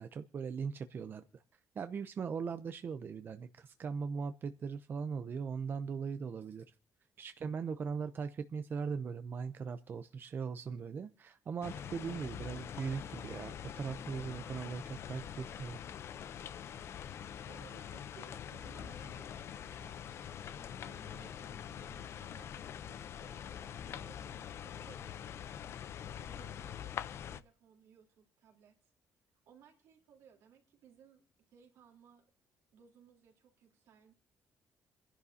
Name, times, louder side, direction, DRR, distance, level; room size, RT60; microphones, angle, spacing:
voice 1, 0.0-1.4 1.7-6.6 7.2-15.8, right 6 dB, 45° right, 0.7 m, -39 dB
sound 1, 11.6-27.4, left 9 dB, 60° left, 0.6 m, -44 dB
voice 2, 17.5-25.6 26.2-28.8 29.5-31.2 31.5-32.2 32.7-34.1, right 7 dB, 80° right, 3.6 m, -62 dB
26.5 x 11.0 x 2.8 m
cardioid pair, 105°, 5 cm